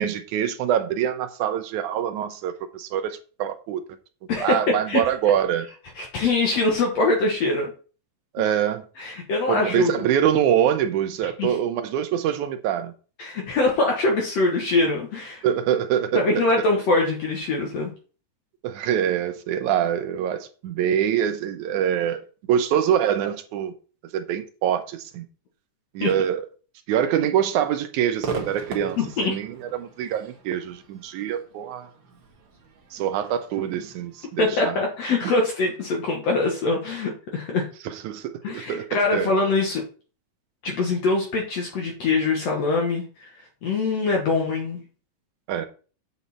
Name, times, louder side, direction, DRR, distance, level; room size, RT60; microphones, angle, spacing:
voice 1, 0.0-3.8 4.4-5.7 8.3-8.9 9.5-12.9 15.4-16.5 18.6-22.2 22.5-23.7 24.1-25.3 25.9-26.5 26.9-31.9 32.9-34.8 37.8-39.3 45.5-45.7, right 9 dB, 75° right, 2.0 m, -24 dB
voice 2, 4.3-4.6 4.9-5.0 6.0-7.7 9.0-10.0 11.4-11.5 13.2-15.4 16.1-17.9 26.0-26.1 29.0-29.4 34.4-37.7 38.4-39.8 40.6-43.3 43.6-44.8, left 3 dB, 60° left, 2.2 m, -23 dB
Crowd / Fireworks, 28.2-35.5, right 5 dB, 50° right, 1.6 m, -39 dB
8.2 x 5.4 x 4.2 m
omnidirectional pair, 3.7 m